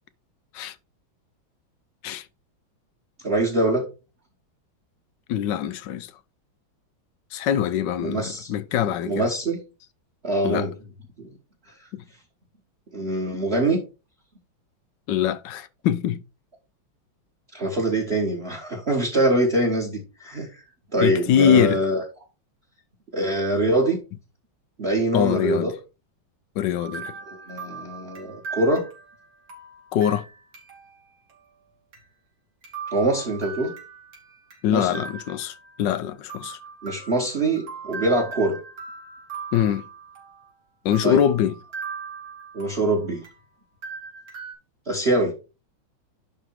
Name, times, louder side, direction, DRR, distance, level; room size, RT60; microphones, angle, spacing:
voice 1, 3.2-3.9 8.0-8.5 9.0-9.6 10.2-10.7 11.2-11.3 11.8-11.9 12.9-13.8 17.5-20.6 20.9-22.0 23.1-24.0 24.8-25.7 27.3-28.9 32.9-33.7 34.7-34.9 36.8-38.6 41.0-41.2 42.5-43.2 44.9-45.3, right 1 dB, 35° right, 1.7 m, -23 dB
voice 2, 5.3-6.1 7.3-9.2 10.4-10.7 11.9-12.0 15.1-16.2 21.0-21.8 25.1-25.7 26.6-27.1 29.9-30.2 34.6-36.6 39.5-39.9 40.8-41.5, left 9 dB, 70° left, 1.3 m, -23 dB
sound 1, 26.8-31.0 31.3-31.4 31.9-32.0 32.6-34.6 34.9-36.0 36.3-40.5 40.9-43.5 43.8-44.5, right 5 dB, 85° right, 3.4 m, -39 dB
11.0 x 3.6 x 4.6 m
omnidirectional pair, 2.2 m